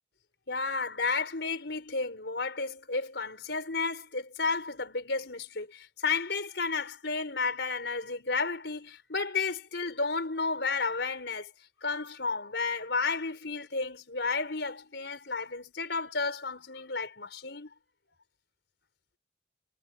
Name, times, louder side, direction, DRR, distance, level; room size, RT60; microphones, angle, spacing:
voice 1, 0.5-11.5 11.8-17.7, left 4 dB, 80° left, 4.2 m, -32 dB
head